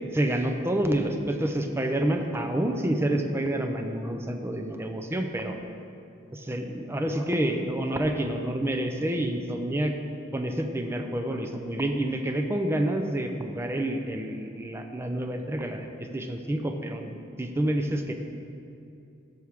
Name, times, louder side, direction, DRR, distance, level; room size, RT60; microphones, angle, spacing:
voice 1, 0.1-5.5 6.3-9.9 10.3-17.1 17.4-18.1, right 1 dB, 15° right, 4 dB, 0.6 m, -28 dB
14.0 x 6.2 x 3.6 m, 2.6 s
head